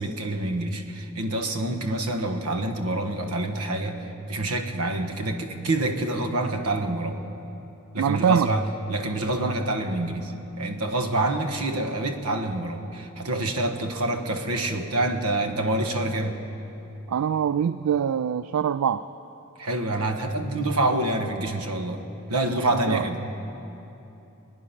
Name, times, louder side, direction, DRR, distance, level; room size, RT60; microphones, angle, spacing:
voice 1, 0.0-7.2 7.9-16.4 19.6-23.3, right 2 dB, 90° right, 6 dB, 1.3 m, -27 dB
voice 2, 8.0-8.5 17.1-19.1 22.9-23.0, right 8 dB, 70° right, 13 dB, 0.3 m, -23 dB
25.0 x 9.7 x 5.9 m, 3.0 s
head